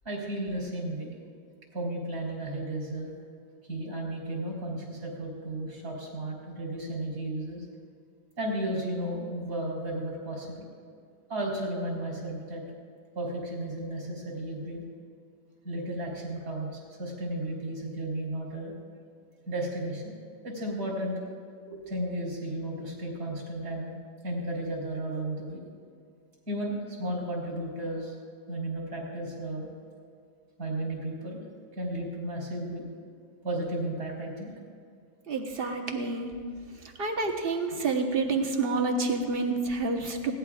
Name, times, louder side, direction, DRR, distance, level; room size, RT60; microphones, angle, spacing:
voice 1, 0.0-1.1 1.7-3.1 3.7-7.7 8.4-10.7 11.3-12.6 13.1-14.8 15.6-18.7 19.5-20.1 20.4-21.2 21.7-23.9 24.2-25.6 26.5-28.2 28.5-29.7 30.6-31.5 31.7-32.9 33.4-34.5, right 1 dB, 85° right, -4 dB, 4.3 m, -34 dB
voice 2, 35.3-36.3 37.0-40.3, right 3 dB, 40° right, 3 dB, 1.3 m, -28 dB
20.0 x 17.0 x 2.4 m, 2.2 s
omnidirectional pair, 1.6 m